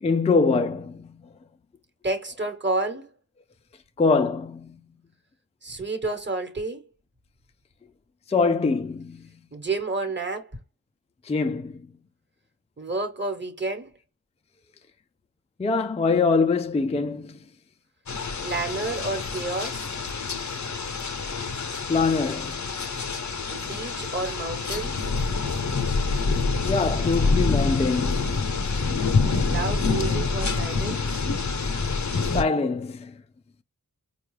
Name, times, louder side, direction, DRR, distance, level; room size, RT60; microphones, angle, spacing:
voice 1, 0.0-1.2 4.0-4.8 8.3-9.3 11.3-11.9 15.6-17.4 21.9-22.8 26.7-28.5 32.3-33.1, left 4 dB, 20° left, 0.4 m, -24 dB
voice 2, 2.0-3.1 5.6-6.8 9.5-10.6 12.8-13.9 18.4-19.9 23.5-25.1 29.4-31.2, right 3 dB, 30° right, 1.2 m, -30 dB
sound 1, 18.1-32.4, left 4 dB, 55° left, 0.7 m, -26 dB
4.5 x 2.3 x 3.1 m
wide cardioid pair, 55°, 34 cm